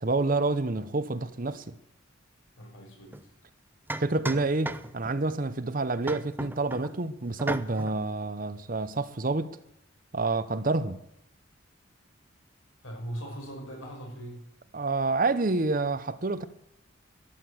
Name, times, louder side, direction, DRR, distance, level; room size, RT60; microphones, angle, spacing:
voice 1, 0.0-1.7 4.0-9.6 10.1-11.0 14.7-16.5, right 3 dB, 40° right, 0.8 m, -28 dB
voice 2, 2.6-3.3 12.8-14.5, right 1 dB, 80° left, 5.8 m, -40 dB
sound 1, 3.1-3.2 3.9-5.2 6.0-6.9 7.4-8.0, right 2 dB, 10° right, 0.6 m, -35 dB
12.5 x 11.5 x 7.9 m
head